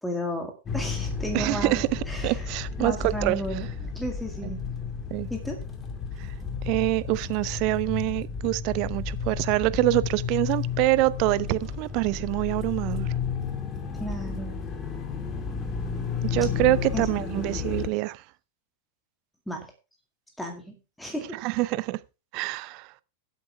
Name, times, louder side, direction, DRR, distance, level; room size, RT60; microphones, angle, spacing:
voice 1, 0.0-1.8 2.1-2.4 2.8-4.7 5.3-5.6 13.9-14.6 16.9-17.7 19.5-19.7 20.4-21.4, equal, 5° left, 2.1 m, -34 dB
sound 1, 0.7-17.9, left 6 dB, 25° left, 2.4 m, -32 dB
voice 2, 1.3-3.4 4.4-4.5 5.1-5.3 6.2-6.3 6.6-13.1 16.2-18.2 21.4-22.0 22.3-22.9, right 20 dB, 45° right, 0.6 m, -26 dB
15.0 x 8.2 x 3.4 m
figure-of-eight pair, 90°, 0 cm